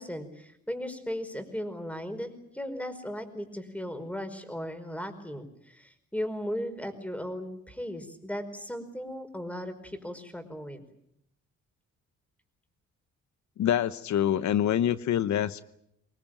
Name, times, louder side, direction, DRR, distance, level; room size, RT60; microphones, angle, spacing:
voice 1, 0.0-10.8, equal, 5° left, 9 dB, 5.0 m, -37 dB
voice 2, 13.6-15.6, left 10 dB, 70° left, 13 dB, 1.0 m, -26 dB
25.5 x 19.5 x 9.0 m, 0.77 s
cardioid pair, 90°, 30 cm